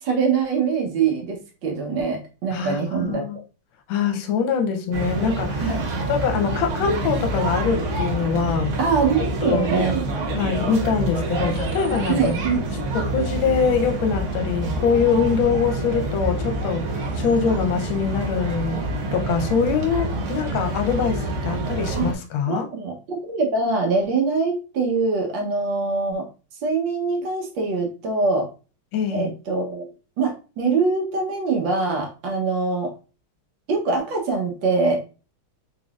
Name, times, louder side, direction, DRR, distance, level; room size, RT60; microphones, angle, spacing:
voice 1, 0.0-3.4 5.6-5.9 8.8-10.1 12.1-12.6 21.9-22.1 22.4-26.3 26.6-28.5 29.1-29.9 30.2-32.9 33.7-35.0, right 4 dB, 65° right, 1.5 m, -23 dB
voice 2, 2.5-3.4 3.9-5.7 6.1-8.7 9.4-9.7 10.3-12.4 12.9-18.8 19.1-22.7 28.9-29.3, left 6 dB, 70° left, 1.4 m, -23 dB
sound 1, 4.9-22.1, right 2 dB, 80° right, 0.6 m, -27 dB
3.8 x 3.7 x 2.3 m
omnidirectional pair, 2.4 m